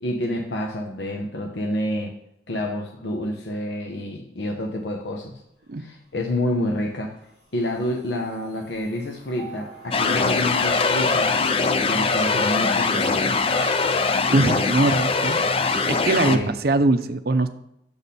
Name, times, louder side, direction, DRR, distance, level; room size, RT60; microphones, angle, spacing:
voice 1, 0.0-2.1 2.5-5.4 5.8-7.1 7.5-11.4 11.9-13.4 16.2-16.5, left 1 dB, 80° left, 1 dB, 0.8 m, -28 dB
sound 1, 5.3-10.2, left 1 dB, 60° left, 2.8 m, -47 dB
sound 2, 9.4-11.3 13.8-15.3, right 1 dB, 5° left, 1.5 m, -43 dB
sound 3, 9.9-16.4, left 4 dB, 35° left, 0.4 m, -22 dB
voice 2, 14.3-17.5, right 2 dB, 60° right, 8 dB, 0.6 m, -22 dB
6.9 x 4.2 x 6.7 m, 0.78 s
head